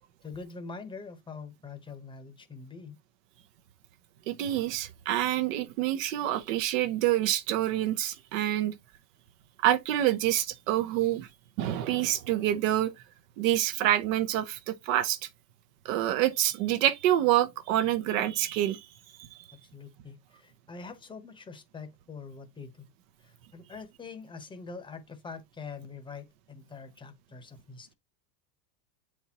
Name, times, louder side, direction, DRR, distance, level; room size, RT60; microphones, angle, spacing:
voice 1, 0.2-3.0 19.7-22.9 23.2-27.9, left 4 dB, 10° left, 1.0 m, -44 dB
voice 2, 4.3-8.7 9.6-11.3 11.6-12.9 13.4-15.2 15.8-18.9 19.2-19.4, right 13 dB, 50° right, 0.8 m, -27 dB
7.8 x 4.4 x 2.9 m
supercardioid pair, 145°, 49 cm